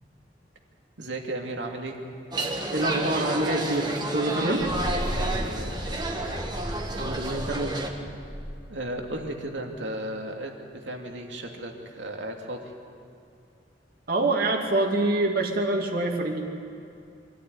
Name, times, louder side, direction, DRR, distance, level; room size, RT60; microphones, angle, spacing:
voice 1, 1.0-2.0 5.1-6.0 8.7-10.5 10.8-12.7, right 1 dB, 90° right, 2 dB, 2.6 m, -35 dB
sound 1, 2.3-7.9, right 2 dB, 25° right, 1.8 m, -31 dB
voice 2, 2.7-4.7 7.0-7.9 14.1-16.4, right 2 dB, 55° right, 1 dB, 2.6 m, -26 dB
sound 2, 4.6-9.4, equal, ahead, 3.2 m, -35 dB
25.5 x 13.5 x 9.6 m, 2.4 s
head